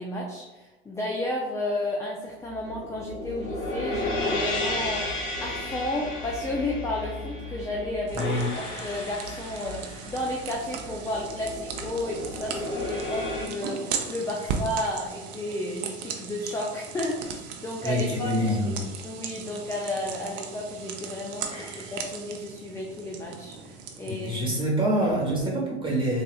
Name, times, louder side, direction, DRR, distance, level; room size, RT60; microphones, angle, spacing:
voice 1, 0.0-8.2 8.6-18.8 19.0-24.4, left 1 dB, 10° left, -1 dB, 0.3 m, -32 dB
sound 1, 2.5-13.5, left 1 dB, 60° left, 1.5 m, -33 dB
voice 2, 8.1-8.5 17.8-18.9 21.5-21.9 24.1-26.2, equal, 15° right, -3 dB, 1.4 m, -26 dB
sound 2, 8.1-24.4, right 6 dB, 50° right, 0.6 m, -38 dB
4.0 x 2.6 x 2.3 m, 1.1 s
hypercardioid pair, 95°, 32 cm